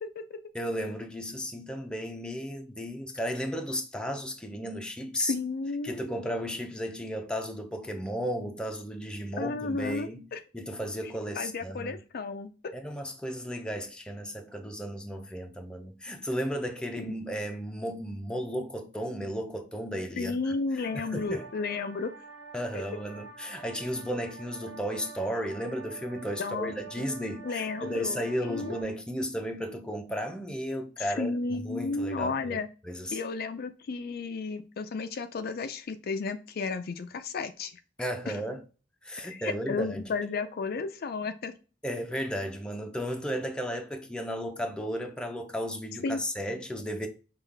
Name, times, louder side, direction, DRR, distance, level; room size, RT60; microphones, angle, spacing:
voice 1, 0.0-0.4 5.2-6.1 9.4-10.4 11.4-12.7 20.2-22.1 22.7-22.8 26.4-27.1 27.4-28.7 31.0-32.7 33.1-37.7 38.3-38.4 39.2-41.5 46.0-46.2, left 4 dB, 55° left, 0.4 m, -33 dB
voice 2, 0.5-5.3 5.8-10.3 10.5-12.0 12.7-21.5 22.5-32.6 32.8-33.2 38.0-38.6 39.0-40.1 41.8-47.1, equal, 5° left, 0.6 m, -34 dB
sound 1, 20.8-28.8, right 5 dB, 80° right, 1.4 m, -47 dB
5.5 x 2.4 x 3.3 m
head